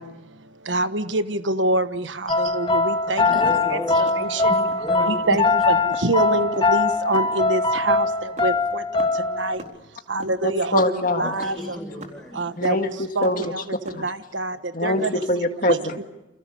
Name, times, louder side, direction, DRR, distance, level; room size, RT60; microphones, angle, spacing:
voice 1, 0.0-3.3 3.7-4.5 5.1-9.6 10.1-10.8 11.1-11.8 12.3-12.8 13.1-15.2 15.7-15.8, right 2 dB, 80° right, 11 dB, 1.4 m, -26 dB
sound 1, 2.3-9.6, left 3 dB, 25° left, 2.1 m, -22 dB
voice 2, 3.2-4.0 4.3-5.4 11.2-12.6 14.8-15.1, equal, 5° left, 3 dB, 6.7 m, -34 dB
sound 2, 3.3-4.9 5.3-5.5 5.9-9.7 10.0-13.0 13.2-14.2, right 1 dB, 40° right, 4.1 m, -42 dB
voice 3, 10.4-11.3 12.6-13.5 14.7-16.0, left 1 dB, 45° left, 5 dB, 1.8 m, -23 dB
30.0 x 28.5 x 6.8 m, 0.94 s
head